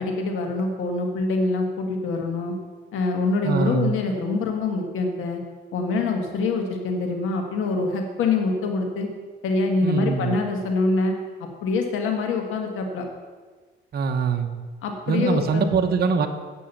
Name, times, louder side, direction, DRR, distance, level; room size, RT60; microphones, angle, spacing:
voice 1, 0.0-2.5 2.9-5.4 5.7-9.1 9.4-13.1 14.8-15.7, left 3 dB, 85° left, 3 dB, 1.8 m, -25 dB
voice 2, 3.4-3.9 9.8-10.4 13.9-14.5 15.1-16.3, right 5 dB, 50° right, 5 dB, 1.0 m, -23 dB
8.5 x 6.3 x 8.4 m, 1.4 s
cardioid pair, 95°, 20 cm